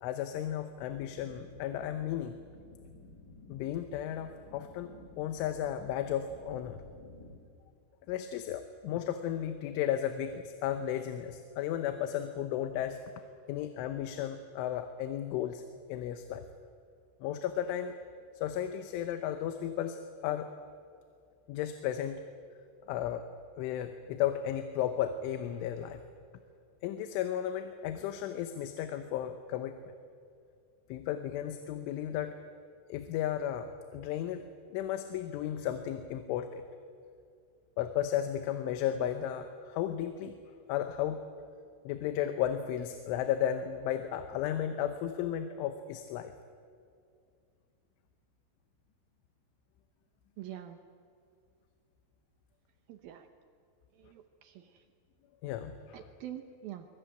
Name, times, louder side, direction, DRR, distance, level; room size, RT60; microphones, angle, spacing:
voice 1, 0.0-2.4 3.5-4.9 5.2-6.8 8.1-13.0 13.5-15.6 15.9-16.4 17.2-17.9 18.4-20.5 21.5-22.2 22.9-23.3 23.6-26.0 26.8-29.8 30.9-32.4 32.9-36.6 37.8-40.4 40.7-41.3 41.9-46.3 55.4-56.1, left 10 dB, 90° left, 8 dB, 3.4 m, -34 dB
sound 1, 0.8-7.4, left 2 dB, 30° left, 2.2 m, -54 dB
voice 2, 50.4-50.8 52.9-53.3 54.0-54.7 55.9-56.9, right 11 dB, 75° right, 8 dB, 2.2 m, -45 dB
23.0 x 21.0 x 9.0 m, 2.3 s
omnidirectional pair, 5.4 m